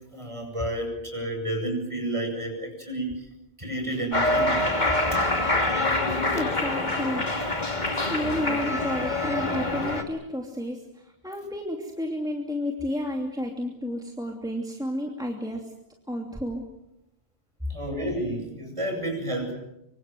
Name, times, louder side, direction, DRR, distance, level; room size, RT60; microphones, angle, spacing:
voice 1, 0.1-3.1 3.6-4.6 5.1-5.3 17.7-19.5, right 1 dB, 30° right, 2 dB, 8.1 m, -30 dB
Cheering, 4.1-10.0, left 2 dB, 45° left, 2.5 m, -25 dB
sound 1, 4.8-9.3, left 2 dB, 70° left, 3.8 m, -44 dB
voice 2, 6.0-7.3 7.9-15.6 16.1-16.6, left 1 dB, 5° right, 1 dB, 2.8 m, -31 dB
25.5 x 25.0 x 7.8 m, 0.87 s
omnidirectional pair, 1.1 m